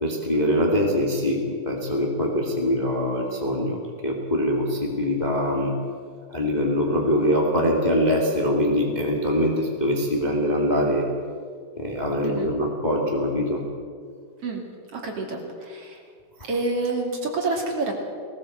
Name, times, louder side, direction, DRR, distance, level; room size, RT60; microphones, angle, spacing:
voice 1, 0.0-5.7 6.3-11.1 11.8-13.6 16.4-16.5, equal, 15° left, 0 dB, 2.1 m, -23 dB
voice 2, 14.9-16.0 16.5-17.9, right 3 dB, 50° right, 1 dB, 3.6 m, -28 dB
19.5 x 17.5 x 7.9 m, 2.1 s
omnidirectional pair, 3.6 m